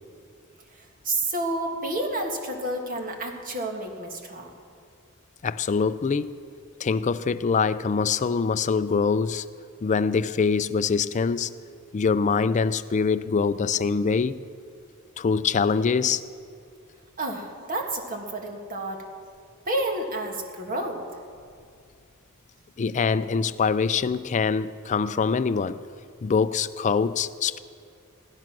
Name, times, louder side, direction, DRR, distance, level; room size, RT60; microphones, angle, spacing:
voice 1, 0.7-4.5 17.2-19.1 19.7-21.0, right 1 dB, 40° right, 1.8 m, -30 dB
voice 2, 5.4-6.3 6.8-9.5 9.8-11.5 11.9-14.4 15.2-16.2 22.8-25.8 26.2-27.6, left 5 dB, 35° left, 0.4 m, -24 dB
17.0 x 12.5 x 6.1 m
head